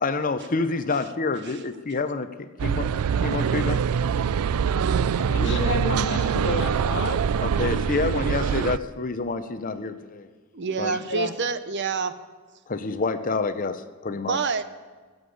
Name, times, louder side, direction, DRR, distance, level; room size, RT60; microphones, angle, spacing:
voice 1, 0.0-2.9 3.2-3.8 5.4-5.6 7.4-10.3 10.8-11.0 12.7-14.4, left 3 dB, 40° left, 11 dB, 0.6 m, -28 dB
sound 1, 2.6-8.8, right 7 dB, 85° right, 0.4 m, -24 dB
voice 2, 5.1-7.5 8.2-8.4 11.0-11.3, left 3 dB, 55° left, 8 dB, 1.2 m, -31 dB
voice 3, 10.5-12.2 14.3-14.6, right 5 dB, 55° right, 12 dB, 0.8 m, -27 dB
16.0 x 7.9 x 8.4 m, 1.4 s
head